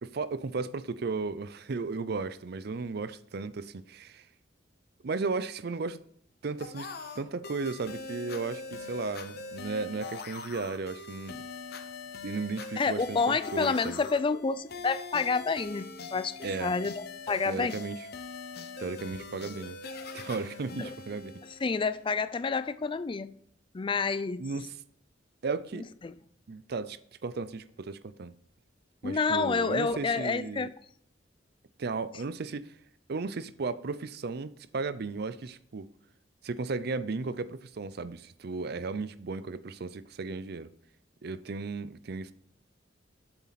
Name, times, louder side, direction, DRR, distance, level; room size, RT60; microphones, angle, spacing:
voice 1, 0.0-4.3 5.0-6.0 6.4-11.4 12.2-14.0 16.4-16.7 17.5-18.0 18.8-19.8 20.1-21.4 24.4-24.8 25.4-25.9 26.5-28.3 29.0-30.7 31.8-32.8 33.1-35.9 36.4-40.7 41.2-42.3, right 4 dB, 60° right, 0.5 m, -35 dB
sound 1, 6.6-22.1, left 3 dB, 60° left, 0.9 m, -42 dB
voice 2, 12.8-17.8 20.8-20.9 21.6-23.3 23.7-24.4 26.0-26.1 29.0-30.7, left 4 dB, 25° left, 0.4 m, -29 dB
8.0 x 7.2 x 4.1 m
head